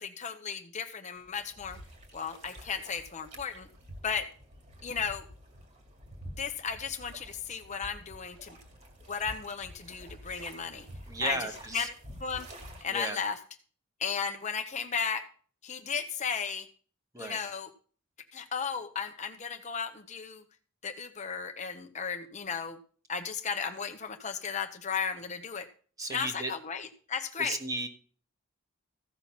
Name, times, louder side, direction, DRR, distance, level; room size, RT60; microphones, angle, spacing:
voice 1, 0.0-1.8 2.1-3.7 4.0-4.3 4.8-5.3 6.4-8.6 9.1-10.9 11.2-11.9 12.2-12.5 12.8-13.4 14.0-15.3 15.6-16.7 17.2-17.7 18.3-20.4 20.8-22.8 23.1-25.7 26.1-27.6, left 6 dB, 35° left, 7 dB, 0.8 m, -35 dB
sound 1, 1.1-12.8, equal, 35° right, 2.0 m, -49 dB
voice 2, 11.1-11.9 12.9-13.2 17.1-17.4 26.0-26.5 27.4-27.9, right 2 dB, 15° right, 5 dB, 1.2 m, -34 dB
15.0 x 5.7 x 5.8 m, 0.43 s
head